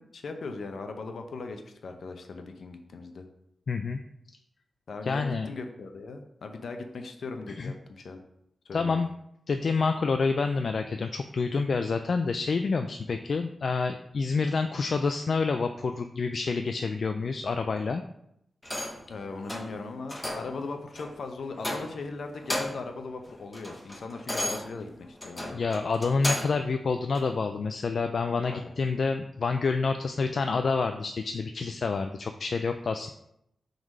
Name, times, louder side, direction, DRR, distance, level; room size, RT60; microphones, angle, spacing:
voice 1, 0.0-3.3 4.9-8.2 8.6-9.0 19.1-25.6 28.5-28.7, left 3 dB, 75° left, 5 dB, 0.7 m, -39 dB
voice 2, 3.7-4.0 5.0-5.5 7.6-7.7 8.7-9.1 9.5-18.0 25.5-33.1, left 4 dB, 60° left, 6 dB, 0.3 m, -28 dB
sound 1, 18.6-19.1 19.5-19.7 20.1-20.5 21.0-21.1 21.6-22.1 22.4-22.9 23.3-26.6 27.1-27.3, left 1 dB, 15° left, 1.0 m, -34 dB
4.7 x 3.9 x 5.3 m, 0.77 s
wide cardioid pair, 100°, 0 cm